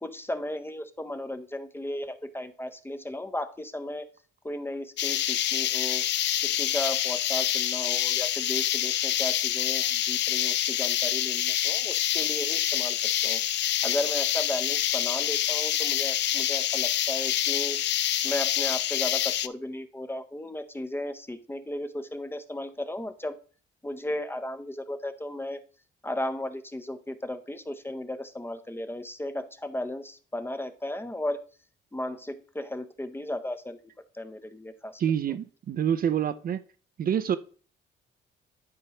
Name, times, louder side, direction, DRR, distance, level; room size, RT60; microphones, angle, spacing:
voice 1, 0.0-4.1 4.4-6.1 6.4-13.0 13.2-13.4 13.8-17.8 18.2-23.4 23.8-25.6 26.0-31.4 31.9-33.8 34.1-35.0, left 1 dB, 10° left, 0.6 m, -35 dB
sound 1, 5.0-19.5, left 12 dB, 60° left, 0.4 m, -26 dB
voice 2, 35.0-36.6 37.0-37.4, right 9 dB, 45° right, 0.5 m, -27 dB
11.0 x 4.5 x 2.9 m
cardioid pair, 90°, 20 cm